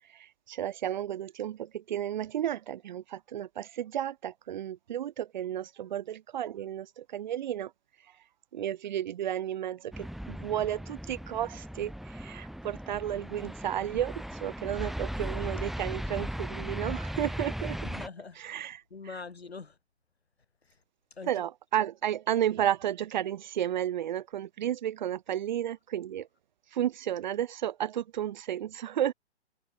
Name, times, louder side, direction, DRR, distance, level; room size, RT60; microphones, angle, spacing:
voice 1, 0.5-7.7 8.5-17.8 18.4-18.8 21.3-26.3 26.7-29.1, right 11 dB, 45° right, 1.8 m, -32 dB
sound 1, 9.9-18.1, equal, ahead, 5.4 m, -37 dB
voice 2, 17.8-19.8 20.7-20.8 21.1-21.4, left 4 dB, 70° left, 7.2 m, -44 dB
figure-of-eight pair, 125°, 33 cm